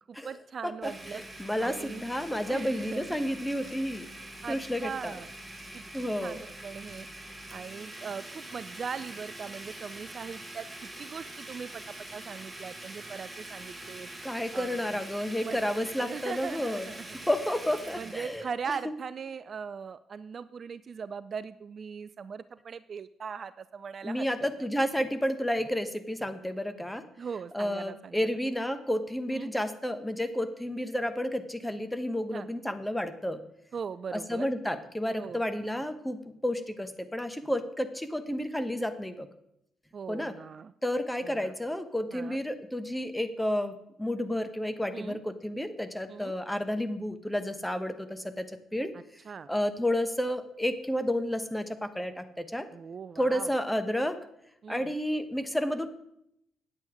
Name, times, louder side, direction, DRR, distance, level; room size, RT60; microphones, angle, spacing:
voice 1, 0.1-1.2 1.6-2.0 2.5-3.1 4.4-5.3 5.7-7.1 7.5-10.7 11.0-14.1 14.5-14.8 15.4-17.1 18.0-24.3 24.6-24.7 27.2-28.2 29.3-29.5 32.3-32.5 33.7-34.5 35.2-35.4 39.9-40.7 41.2-41.5 42.1-42.4 44.9-45.2 46.1-46.3 48.9-49.5 52.7-53.5 54.6-54.9, right 6 dB, 45° right, 15 dB, 0.3 m, -40 dB
voice 2, 0.8-4.1 4.5-5.1 5.9-6.4 14.2-16.9 17.3-18.4 24.0-27.1 27.5-33.4 34.1-39.3 40.1-40.3 40.8-48.5 48.7-48.9 49.5-52.7 53.2-54.2 54.7-55.9, equal, 5° left, 10 dB, 1.2 m, -31 dB
Domestic sounds home sounds, 0.8-18.4, right 1 dB, 15° right, 1.9 m, -44 dB
9.7 x 8.3 x 5.0 m, 0.77 s
hypercardioid pair, 45°, 0 cm